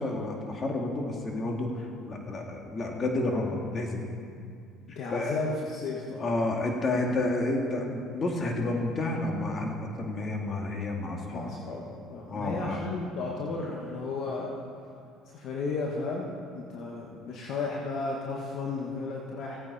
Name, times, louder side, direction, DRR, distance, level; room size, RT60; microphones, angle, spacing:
voice 1, 0.0-4.0 4.9-5.3 6.2-11.5 12.3-12.8, left 2 dB, 40° left, 1 dB, 2.3 m, -30 dB
voice 2, 4.9-6.3 11.3-14.6 15.3-19.6, left 3 dB, 60° left, -1 dB, 1.5 m, -34 dB
17.0 x 9.3 x 4.3 m, 2.4 s
supercardioid pair, 75°, 0 cm